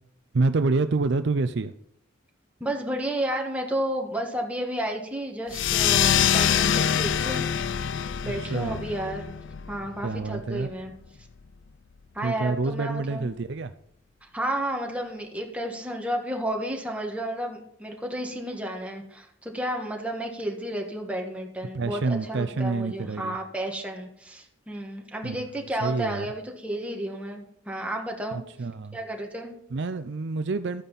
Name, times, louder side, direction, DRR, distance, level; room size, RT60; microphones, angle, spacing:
voice 1, 0.3-1.7 8.2-8.8 10.0-10.7 12.2-13.7 21.7-23.4 25.2-25.4 25.8-26.3 28.3-29.0 29.7-30.8, right 3 dB, 60° right, 11 dB, 0.5 m, -27 dB
voice 2, 2.6-7.4 8.2-9.3 9.7-10.9 12.1-13.3 14.3-28.4 28.9-29.5, right 1 dB, 5° right, 1 dB, 1.6 m, -32 dB
sound 1, 5.5-10.6, left 9 dB, 65° left, 0.4 m, -25 dB
13.0 x 9.2 x 4.1 m, 0.73 s
head